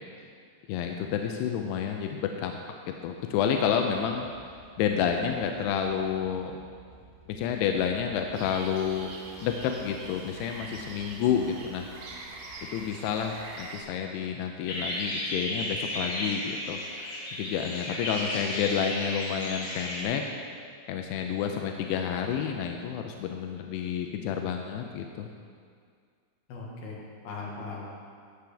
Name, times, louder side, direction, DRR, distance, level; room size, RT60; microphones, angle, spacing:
voice 1, 0.7-2.6 3.0-4.3 4.8-6.6 7.3-9.1 9.4-11.9 12.7-16.8 17.4-20.2 20.9-25.3, left 8 dB, 90° left, 4 dB, 2.7 m, -29 dB
sound 1, 4.0-14.0, right 2 dB, 20° right, 1.5 m, -55 dB
sound 2, 8.3-13.8, right 3 dB, 75° right, 2.9 m, -44 dB
sound 3, 14.7-20.0, left 1 dB, 45° left, 2.2 m, -34 dB
voice 2, 26.5-27.8, left 3 dB, 70° left, -4 dB, 3.4 m, -39 dB
15.0 x 7.7 x 3.4 m, 2.1 s
omnidirectional pair, 4.6 m